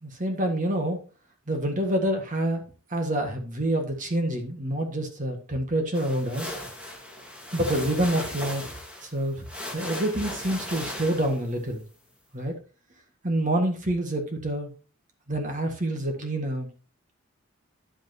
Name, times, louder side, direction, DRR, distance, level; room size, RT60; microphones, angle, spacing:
voice 1, 0.0-1.0 1.5-2.6 2.9-6.5 7.5-8.7 9.0-9.4 9.7-11.8 12.3-12.6 13.2-14.7 15.3-16.7, right 1 dB, 40° right, 4 dB, 1.7 m, -27 dB
sound 1, 5.9-11.6, left 1 dB, 5° right, 2.6 m, -37 dB
10.5 x 8.7 x 2.8 m, 0.34 s
head